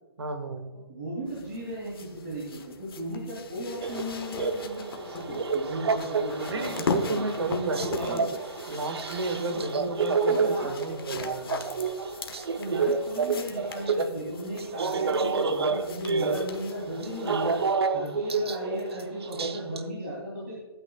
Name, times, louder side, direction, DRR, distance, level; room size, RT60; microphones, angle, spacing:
voice 1, 0.2-0.6 6.5-8.4 8.7-11.5, right 2 dB, 90° right, 7 dB, 1.9 m, -32 dB
voice 2, 0.9-8.3 9.4-9.6 10.3-10.8 12.6-17.6 17.9-20.5, equal, 35° right, -6 dB, 3.2 m, -36 dB
sound 1, 1.3-17.7 18.7-18.8, left 5 dB, 60° left, 1.1 m, -40 dB
sound 2, 3.8-14.2 14.6-19.9, right 4 dB, 70° right, 0.9 m, -29 dB
15.5 x 8.9 x 2.4 m, 1.4 s
hypercardioid pair, 175°, 14 cm